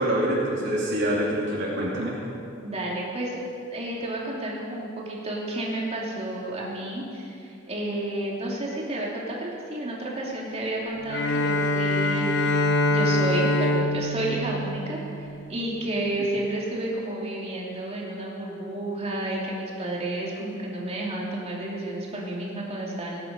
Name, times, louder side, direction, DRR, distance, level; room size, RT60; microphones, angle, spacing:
voice 1, 0.0-2.1, right 1 dB, 60° right, -6 dB, 2.6 m, -25 dB
voice 2, 2.6-3.4 3.7-12.6 12.9-23.2, right 1 dB, 30° right, -3 dB, 2.8 m, -31 dB
Bowed string instrument, 11.1-15.5, left 2 dB, 55° left, 0.9 m, -24 dB
19.0 x 10.0 x 5.3 m, 2.6 s
head